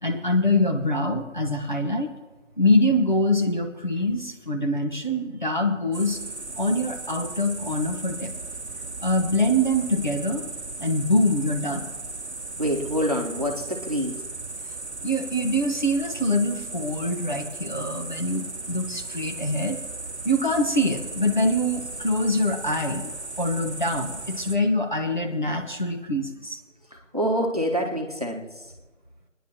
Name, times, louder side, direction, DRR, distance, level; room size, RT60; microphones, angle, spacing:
voice 1, 0.0-2.1 2.6-6.2 6.6-8.3 9.0-10.5 10.8-11.8 15.0-19.8 20.2-23.1 23.4-26.6, left 1 dB, 40° left, 2 dB, 1.1 m, -24 dB
sound 1, 5.9-24.6, right 3 dB, 60° right, 0.9 m, -36 dB
voice 2, 12.6-14.2 27.1-28.4, equal, 30° right, 1 dB, 1.3 m, -26 dB
28.5 x 10.5 x 3.0 m, 1.2 s
figure-of-eight pair, 175°, 37 cm